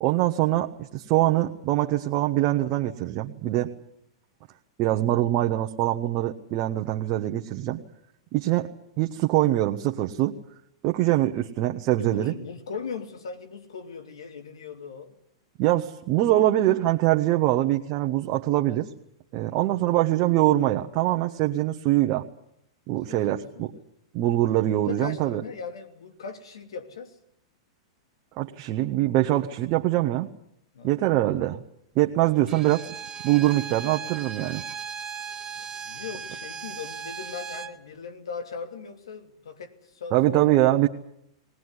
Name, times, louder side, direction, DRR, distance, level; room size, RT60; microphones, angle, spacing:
voice 1, 0.0-3.7 4.8-7.8 8.3-8.7 9.0-10.4 10.8-12.3 15.6-18.9 19.3-22.2 22.9-23.7 24.1-25.4 28.4-30.3 30.8-31.6 31.9-32.8 33.2-34.6 40.1-40.9, right 15 dB, 45° right, 1.3 m, -23 dB
voice 2, 12.0-15.2 19.4-19.6 23.1-23.8 24.6-27.2 30.7-31.1 32.2-32.5 35.5-40.4, left 6 dB, 80° left, 2.9 m, -39 dB
Bowed string instrument, 32.5-37.8, right 7 dB, 20° right, 2.0 m, -37 dB
20.5 x 19.0 x 9.8 m
hypercardioid pair, 115°, 3 cm